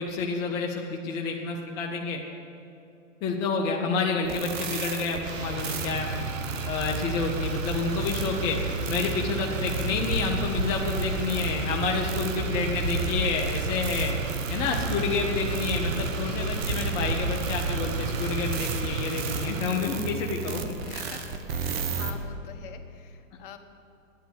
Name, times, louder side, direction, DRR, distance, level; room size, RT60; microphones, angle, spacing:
voice 1, 0.0-2.2 3.2-6.1 6.7-8.6 8.9-14.1 14.5-20.8 21.7-21.8, left 4 dB, 10° left, 0 dB, 0.3 m, -29 dB
sound 1, 4.2-22.1, right 6 dB, 50° right, 1.3 m, -37 dB
Motor vehicle (road), 5.2-19.8, right 3 dB, 80° right, 1.2 m, -31 dB
sound 2, 6.7-18.5, right 2 dB, 25° right, 1.0 m, -37 dB
voice 2, 16.0-16.6 20.8-23.6, left 8 dB, 45° left, 7 dB, 1.1 m, -46 dB
10.0 x 9.3 x 8.1 m, 2.6 s
hypercardioid pair, 130°, 39 cm